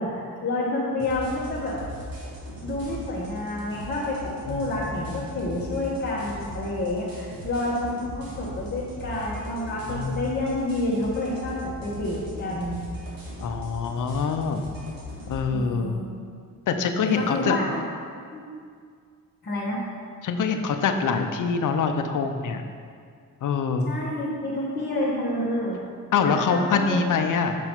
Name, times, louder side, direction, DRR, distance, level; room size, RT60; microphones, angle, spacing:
voice 1, 0.0-1.8 2.6-12.8 15.5-16.1 17.0-17.8 18.3-18.4 19.4-19.8 23.8-25.8 26.3-27.0, left 1 dB, 30° left, -8 dB, 1.2 m, -29 dB
sound 1, 1.0-15.4, equal, 70° right, 1.8 m, -39 dB
voice 2, 4.5-5.2 9.9-10.2 13.4-14.7 15.3-16.0 16.7-17.6 20.2-22.7 23.4-23.9 26.1-27.6, left 5 dB, 60° left, 6 dB, 0.6 m, -25 dB
6.1 x 5.6 x 4.5 m, 2.1 s
wide cardioid pair, 145°, 35 cm